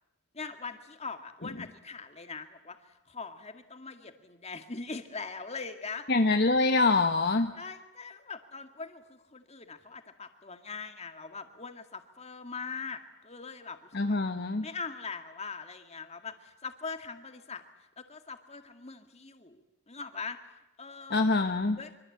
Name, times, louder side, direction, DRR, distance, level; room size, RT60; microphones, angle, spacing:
voice 1, 0.3-6.1 7.5-14.1 14.6-17.6 18.0-20.4 20.8-21.3 21.8-21.9, left 4 dB, 30° left, 7 dB, 2.1 m, -42 dB
voice 2, 6.1-7.5 13.9-14.7 21.1-21.8, left 3 dB, 50° left, 6 dB, 1.1 m, -25 dB
25.0 x 24.5 x 8.7 m, 0.94 s
head